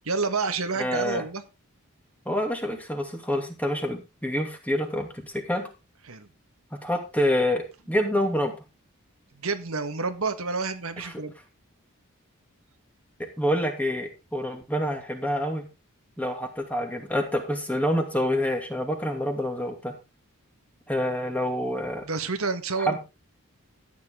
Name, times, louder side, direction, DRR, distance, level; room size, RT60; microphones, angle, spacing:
voice 1, 0.0-1.4 6.1-6.3 9.4-11.3 22.1-23.0, right 4 dB, 80° right, 8 dB, 1.7 m, -29 dB
voice 2, 0.8-1.2 2.3-5.7 6.7-8.6 11.0-11.1 13.2-15.7 16.2-19.9 20.9-22.0 22.9-23.0, equal, 5° left, 4 dB, 2.6 m, -27 dB
14.0 x 9.4 x 3.8 m, 0.28 s
head